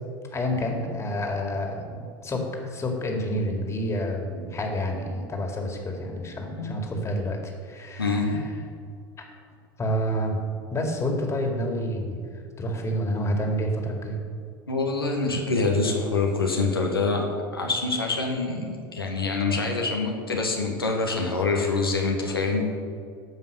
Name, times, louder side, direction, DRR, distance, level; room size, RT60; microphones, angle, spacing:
voice 1, 0.3-1.8 2.2-7.4 7.6-8.4 9.8-10.4 10.7-12.2 12.6-14.2, equal, 25° left, 2 dB, 2.1 m, -28 dB
voice 2, 8.0-8.4 14.7-17.3 17.5-22.6, left 3 dB, 90° left, 0 dB, 1.3 m, -25 dB
14.0 x 5.5 x 6.4 m, 2.2 s
figure-of-eight pair, 80°, 12 cm